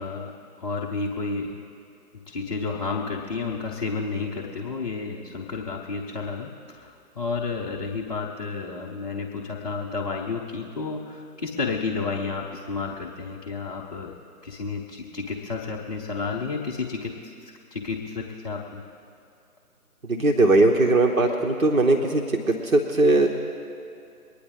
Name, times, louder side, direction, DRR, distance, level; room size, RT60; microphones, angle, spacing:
voice 1, 0.0-1.6 2.3-14.1 14.4-18.8, left 4 dB, 25° left, -5 dB, 0.9 m, -31 dB
voice 2, 20.1-23.3, right 2 dB, 60° right, 1 dB, 1.4 m, -20 dB
24.0 x 10.0 x 3.8 m, 2.5 s
figure-of-eight pair, 155°, 46 cm